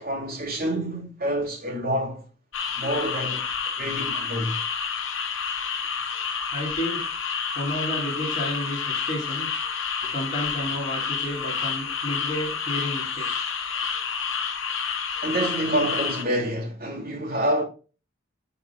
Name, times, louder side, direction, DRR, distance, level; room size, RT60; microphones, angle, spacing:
voice 1, 0.0-2.2 2.8-3.4 3.8-4.6 15.2-17.6, right 1 dB, 50° right, 2.8 m, -27 dB
sound 1, 2.5-16.2, left 6 dB, 85° left, 1.1 m, -29 dB
voice 2, 6.5-7.2 7.6-9.6 10.1-13.5, left 1 dB, 40° left, 3.4 m, -31 dB
10.5 x 4.9 x 2.3 m
head